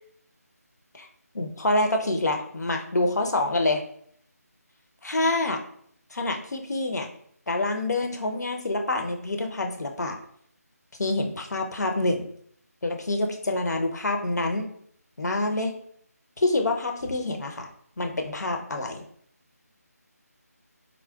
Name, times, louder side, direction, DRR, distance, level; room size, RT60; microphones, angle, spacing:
voice 1, 1.3-3.8 5.0-5.6 6.1-7.1 7.5-10.2 11.0-12.3 12.8-14.7 15.2-15.7 16.4-17.7 18.0-19.0, left 2 dB, 80° left, 4 dB, 0.6 m, -26 dB
3.7 x 2.0 x 2.2 m, 0.64 s
figure-of-eight pair, 165°, 9 cm